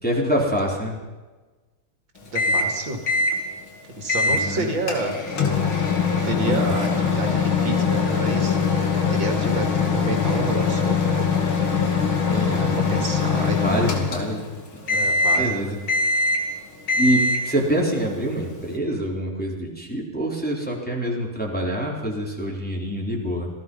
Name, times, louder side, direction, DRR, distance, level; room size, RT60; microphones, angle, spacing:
voice 1, 0.0-1.0 4.3-4.7 6.4-6.7 12.3-12.8 13.3-15.1 15.3-15.8 17.0-23.5, equal, 5° left, -2 dB, 3.7 m, -26 dB
voice 2, 2.2-3.0 3.9-5.2 6.0-8.6 8.9-11.3 12.3-14.0 14.9-15.7, right 2 dB, 70° right, 3 dB, 3.3 m, -29 dB
Microwave oven, 2.4-2.8 3.1-3.4 4.1-4.4 4.9-14.5 14.9-15.5 15.9-16.5 16.9-17.5, left 4 dB, 90° left, 3.3 m, -22 dB
27.0 x 18.0 x 5.5 m, 1.3 s
omnidirectional pair, 2.2 m